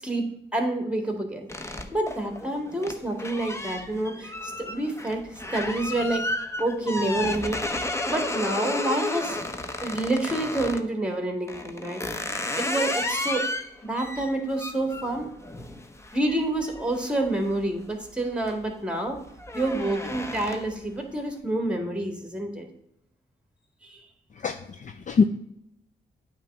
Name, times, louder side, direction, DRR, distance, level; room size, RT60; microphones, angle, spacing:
voice 1, 0.0-5.2 5.5-6.2 6.6-7.6 8.1-9.4 9.8-12.0 12.5-13.5 13.8-15.3 16.1-19.2 19.5-22.7 23.8-24.0, right 1 dB, 5° right, 4 dB, 1.8 m, -28 dB
sound 1, 1.5-10.9 11.5-17.9 18.3-18.7 19.0-20.8, left 2 dB, 15° left, 0.8 m, -33 dB
voice 2, 24.4-25.2, left 5 dB, 45° left, 7 dB, 0.5 m, -24 dB
8.9 x 3.2 x 5.9 m, 0.78 s
cardioid pair, 70°, 18 cm